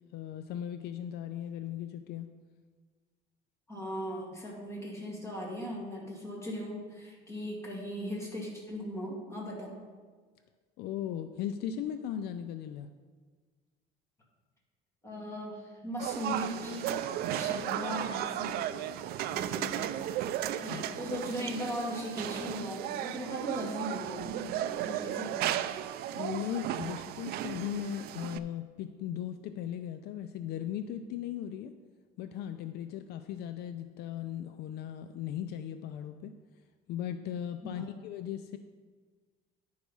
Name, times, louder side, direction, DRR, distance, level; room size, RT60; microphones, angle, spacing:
voice 1, 0.1-2.3 10.8-12.9 20.7-20.8 26.1-31.7 32.2-36.3 36.9-38.6, left 10 dB, 65° left, 9 dB, 0.4 m, -37 dB
voice 2, 3.7-9.8 15.0-16.9 17.2-19.8 20.6-25.5 37.6-37.9, equal, 15° left, -2 dB, 2.0 m, -39 dB
sound 1, 16.0-28.4, right 11 dB, 60° right, 0.4 m, -35 dB
10.0 x 4.7 x 5.4 m, 1.5 s
cardioid pair, 150°, 18 cm